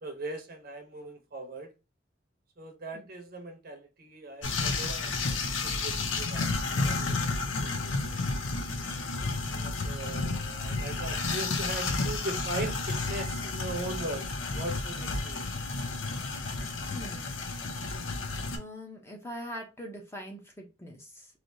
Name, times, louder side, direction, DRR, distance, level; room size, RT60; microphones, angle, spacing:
voice 1, 0.0-1.7 2.6-7.2 7.5-8.3 9.5-15.5, right 2 dB, 50° right, 0.7 m, -40 dB
sound 1, 4.4-18.6, left 3 dB, 85° left, 0.6 m, -31 dB
voice 2, 9.6-10.0 16.9-17.3 18.5-21.3, equal, 15° left, 0.6 m, -43 dB
3.3 x 2.6 x 2.6 m
head